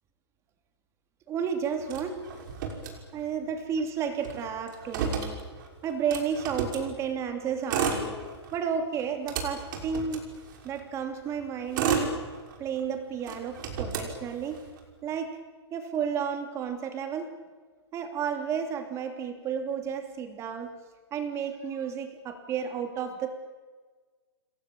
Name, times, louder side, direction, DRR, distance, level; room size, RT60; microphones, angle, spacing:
voice 1, 1.3-2.2 3.1-5.4 5.8-8.2 8.5-10.2 10.6-12.2 12.6-14.6 15.0-15.3 15.7-17.3 17.9-20.7 21.1-23.4, right 7 dB, 20° right, 6 dB, 3.0 m, -32 dB
Motor vehicle (road), 1.9-3.5 3.8-3.9 4.1-6.9 7.5-8.6 9.0-10.8 11.4-12.8 13.2-14.8, right 6 dB, 45° right, 5.9 m, -32 dB
28.5 x 22.0 x 8.9 m, 1.4 s
hypercardioid pair, 155°, 14 cm